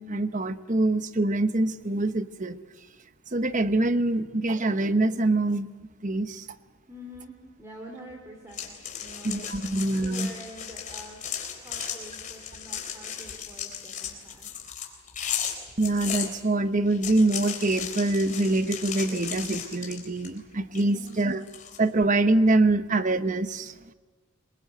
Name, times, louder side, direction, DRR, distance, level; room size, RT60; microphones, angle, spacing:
voice 1, 0.0-2.6 3.3-5.7 6.0-6.5 9.2-10.3 11.8-11.9 15.8-21.4 21.8-23.8, right 2 dB, 35° right, 11 dB, 0.9 m, -25 dB
voice 2, 6.9-9.7 10.0-11.2 11.6-14.7 20.8-21.4, equal, 15° right, 2 dB, 2.9 m, -46 dB
sound 1, 8.5-16.3 16.9-20.4 20.8-21.8, left 8 dB, 35° left, 3.8 m, -36 dB
26.5 x 22.0 x 7.9 m, 1.3 s
head